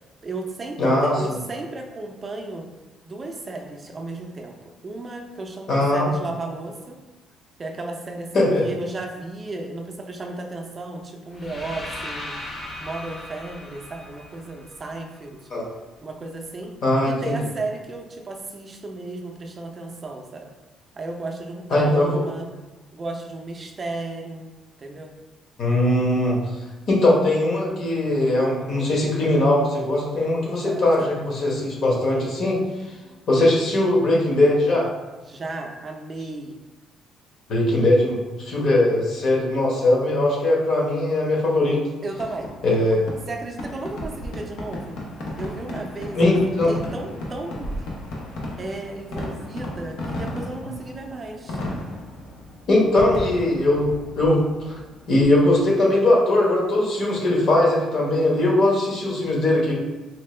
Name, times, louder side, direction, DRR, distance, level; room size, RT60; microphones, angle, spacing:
voice 1, 0.2-2.7 3.0-7.0 7.6-12.3 12.8-15.5 16.0-16.7 17.0-20.5 21.0-22.5 22.9-24.5 24.8-25.1 30.6-30.8 33.0-33.2 35.3-36.6 42.0-42.5 42.9-43.0 43.3-45.0 45.4-46.4 46.7-47.9 48.6-51.6, right 2 dB, 25° right, 2 dB, 0.4 m, -34 dB
voice 2, 0.8-1.2 5.7-6.1 8.3-8.6 15.5-15.6 16.8-17.4 21.7-22.1 25.6-26.5 26.9-32.6 33.3-34.9 37.5-41.8 42.6-43.1 46.1-46.7 52.7-54.8 55.1-59.7, left 1 dB, 50° left, -3 dB, 1.0 m, -20 dB
sound 1, 11.3-15.3, left 1 dB, 35° left, 0.5 m, -37 dB
Fireworks, 42.1-55.7, left 1 dB, 80° left, 0.8 m, -34 dB
4.3 x 2.2 x 3.2 m, 1.2 s
cardioid pair, 155°, 0 cm